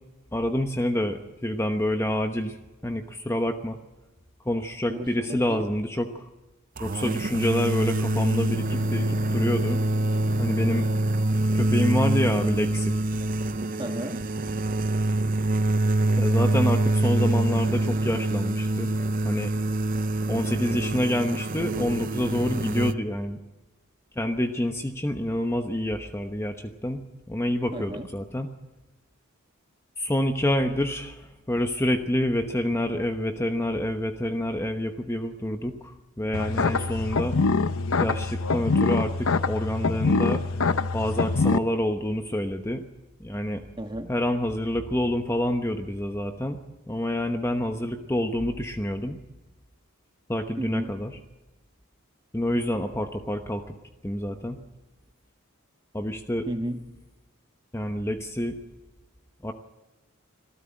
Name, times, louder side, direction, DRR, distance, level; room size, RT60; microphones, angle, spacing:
voice 1, 0.3-2.6 2.8-3.8 4.4-6.3 6.8-9.8 10.4-10.9 11.5-13.0 16.2-18.9 19.2-19.5 20.3-23.4 24.2-28.5 30.0-37.4 38.0-40.4 40.9-42.8 43.2-43.7 44.1-46.6 46.9-49.2 50.3-51.1 52.3-53.6 54.0-54.6 55.9-56.5 57.7-58.6 59.4-59.5, left 1 dB, 10° left, 5 dB, 1.0 m, -27 dB
voice 2, 4.9-5.7 13.8-14.2 27.7-28.1 43.8-44.1 50.6-50.9 56.5-56.8, right 1 dB, 20° right, 6 dB, 1.5 m, -33 dB
sound 1, 6.8-22.9, right 2 dB, 40° right, 0.7 m, -25 dB
sound 2, 36.3-41.6, left 3 dB, 65° left, 0.7 m, -24 dB
26.0 x 14.0 x 8.7 m, 1.1 s
head